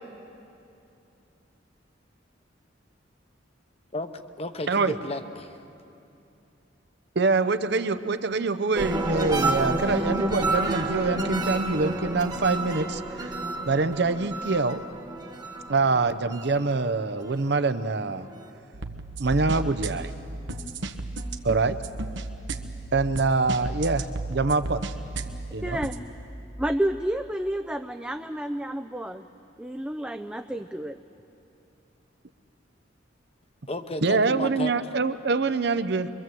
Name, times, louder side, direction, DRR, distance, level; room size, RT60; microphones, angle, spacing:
voice 1, 4.4-5.6 33.7-34.7, left 2 dB, 35° left, 8 dB, 1.0 m, -33 dB
voice 2, 7.2-13.3 13.7-14.8 15.7-18.3 19.2-20.1 21.4-21.8 22.9-24.8 25.5-25.8 34.0-36.1, right 3 dB, 60° right, 11 dB, 0.8 m, -25 dB
sound 1, 8.7-17.6 18.0-18.5, right 2 dB, 20° right, 1.4 m, -29 dB
sound 2, 18.7-26.0, right 2 dB, 85° right, 1.2 m, -34 dB
voice 3, 25.6-25.9 26.6-29.3 29.6-31.0, right 1 dB, 5° right, 6 dB, 0.5 m, -30 dB
23.5 x 23.5 x 7.8 m, 2.8 s
head